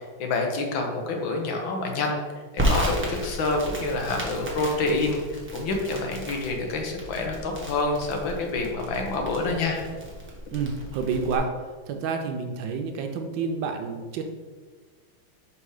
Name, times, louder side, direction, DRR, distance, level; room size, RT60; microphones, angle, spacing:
voice 1, 0.2-2.2 2.7-9.8, left 3 dB, 75° left, 2 dB, 1.6 m, -27 dB
Crackle, 2.6-11.4, equal, 10° right, 0.7 m, -33 dB
voice 2, 10.5-11.5 11.9-14.2, right 5 dB, 75° right, 5 dB, 1.1 m, -29 dB
5.4 x 3.7 x 4.8 m, 1.4 s
omnidirectional pair, 2.2 m